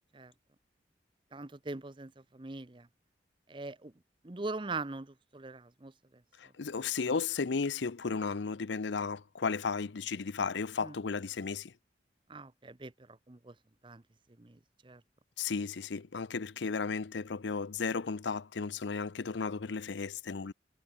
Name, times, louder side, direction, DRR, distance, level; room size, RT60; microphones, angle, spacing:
voice 1, 1.3-2.9 3.5-3.9 4.2-6.2 10.8-11.0 12.3-13.5 13.8-14.0 14.4-15.0, right 3 dB, 25° right, 0.8 m, -42 dB
voice 2, 6.4-11.7 15.4-20.5, left 5 dB, 80° left, 0.6 m, -34 dB
head